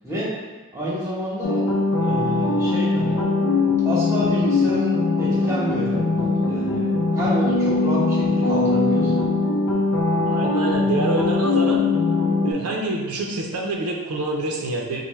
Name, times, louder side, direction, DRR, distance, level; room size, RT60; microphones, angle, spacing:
voice 1, 0.7-1.7 2.0-3.2 3.8-9.1, equal, 15° right, -6 dB, 0.9 m, -29 dB
sound 1, 1.4-12.5, left 3 dB, 80° left, 0.4 m, -21 dB
voice 2, 10.3-11.8 12.4-15.1, right 2 dB, 80° right, 0 dB, 0.5 m, -26 dB
4.5 x 2.0 x 3.1 m, 1.2 s
head